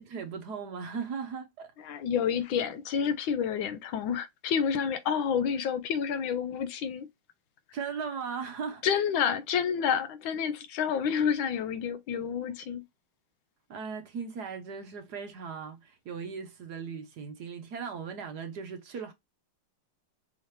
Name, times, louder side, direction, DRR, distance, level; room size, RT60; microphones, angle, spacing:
voice 1, 0.0-1.7 7.7-8.8 13.7-19.1, right 6 dB, 65° right, 1.2 m, -38 dB
voice 2, 1.8-7.1 8.8-12.8, left 7 dB, 75° left, 1.4 m, -29 dB
5.6 x 2.8 x 3.2 m
omnidirectional pair, 2.2 m